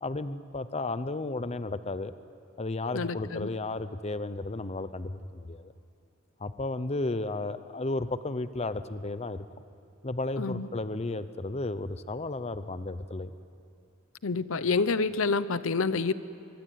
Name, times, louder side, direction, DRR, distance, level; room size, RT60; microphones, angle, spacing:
voice 1, 0.0-2.1 2.6-5.7 6.4-9.5 10.0-13.3, left 2 dB, 30° left, 13 dB, 0.7 m, -33 dB
voice 2, 2.9-3.5 10.4-10.7 14.2-16.1, left 4 dB, 80° left, 15 dB, 0.8 m, -28 dB
24.5 x 24.0 x 9.5 m, 2.6 s
head